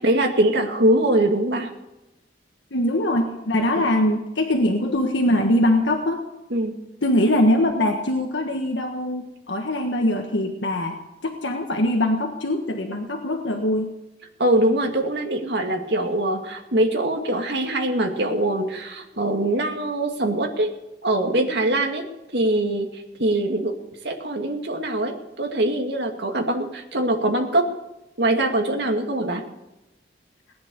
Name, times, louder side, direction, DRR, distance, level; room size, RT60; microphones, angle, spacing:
voice 1, 0.0-1.7 6.5-6.8 14.4-20.7 21.0-22.0 22.3-23.8 24.0-27.7 28.2-29.4, right 1 dB, 65° right, 2 dB, 2.3 m, -23 dB
voice 2, 2.7-6.2 7.0-13.9, left 1 dB, 80° left, 3 dB, 1.6 m, -22 dB
19.5 x 10.5 x 7.0 m, 0.96 s
head